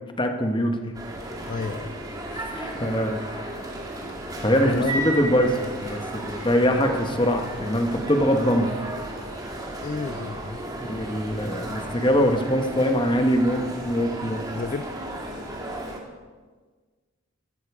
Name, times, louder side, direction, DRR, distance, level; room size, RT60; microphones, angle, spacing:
voice 1, 0.2-0.8 2.3-3.5 4.4-8.7 10.8-14.5, equal, 25° left, 5 dB, 1.2 m, -23 dB
sound 1, 0.9-16.0, right 1 dB, 20° right, 1.8 m, -34 dB
voice 2, 1.5-1.9 4.6-5.0 9.8-10.6 14.5-14.9, left 4 dB, 40° left, 12 dB, 0.4 m, -31 dB
15.5 x 13.0 x 4.9 m, 1.4 s
head